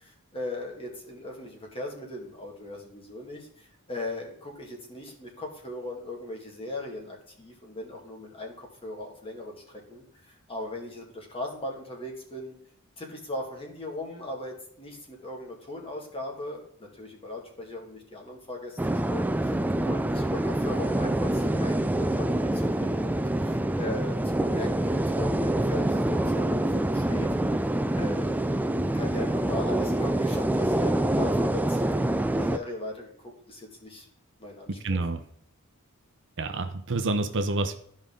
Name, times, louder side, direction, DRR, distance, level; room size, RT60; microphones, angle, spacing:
voice 1, 0.0-12.6 13.0-19.5 19.8-27.3 27.9-28.4 28.9-34.1 34.4-35.0, left 1 dB, 25° left, 0 dB, 2.1 m, -38 dB
sound 1, 18.8-32.6, right 1 dB, 5° right, 0.3 m, -26 dB
voice 2, 34.8-35.2 36.4-37.7, right 2 dB, 55° right, 7 dB, 0.7 m, -28 dB
13.0 x 5.2 x 3.8 m, 0.67 s
head